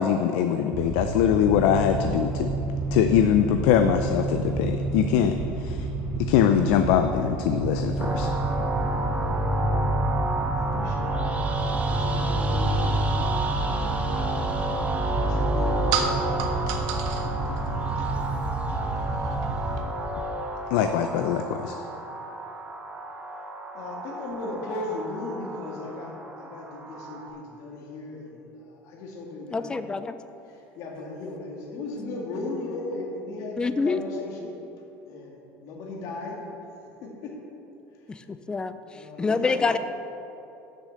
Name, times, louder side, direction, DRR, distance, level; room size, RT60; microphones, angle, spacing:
voice 1, 0.0-2.5 2.9-5.3 5.6-5.8 6.3-8.3 20.7-21.7, left 9 dB, 80° left, 7 dB, 0.5 m, -22 dB
sound 1, 0.7-19.8, right 3 dB, 50° right, 2.0 m, -30 dB
sound 2, 8.0-27.3, right 1 dB, 20° right, 0.9 m, -30 dB
voice 2, 10.5-11.6 11.9-14.3 15.1-16.2 16.9-18.2 19.2-19.4 23.7-29.8 30.5-34.5 35.1-36.4 37.0-37.3 38.9-39.6, left 2 dB, 60° left, -1 dB, 1.8 m, -37 dB
sound 3, 14.3-19.8, right 7 dB, 70° right, 0.9 m, -35 dB
voice 3, 29.5-30.2 33.6-34.0 38.1-39.8, left 4 dB, 15° left, 11 dB, 0.4 m, -27 dB
6.5 x 6.5 x 7.7 m, 2.9 s
cardioid pair, 135°, 6 cm